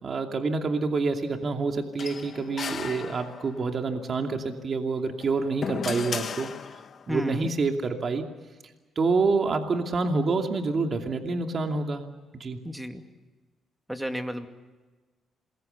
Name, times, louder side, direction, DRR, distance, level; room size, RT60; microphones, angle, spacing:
voice 1, 0.0-6.5 7.1-8.2 9.0-12.0 12.3-12.6, right 4 dB, 45° right, 4 dB, 2.6 m, -27 dB
sound 1, 2.0-3.7 5.1-7.1, left 6 dB, 50° left, 1.5 m, -35 dB
voice 2, 7.1-7.5 12.6-13.0 13.9-14.5, equal, 5° right, 6 dB, 2.4 m, -32 dB
27.5 x 21.5 x 6.9 m, 1.3 s
cardioid pair, 90°, 0 cm